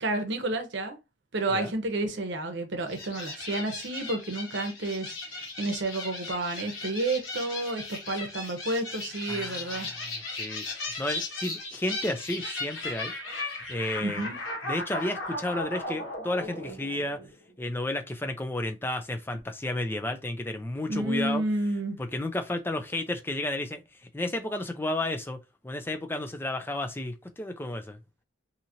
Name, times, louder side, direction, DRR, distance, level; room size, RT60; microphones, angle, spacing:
voice 1, 0.0-1.0 1.3-9.9 14.0-14.4 20.9-22.0, right 2 dB, 65° right, 0.8 m, -30 dB
sound 1, 2.9-17.5, left 2 dB, 85° left, 1.2 m, -37 dB
voice 2, 9.3-13.1 13.4-14.3 14.6-17.2 17.6-21.4 22.0-25.4 25.6-28.0, left 1 dB, 10° left, 0.4 m, -32 dB
2.9 x 2.8 x 2.5 m
head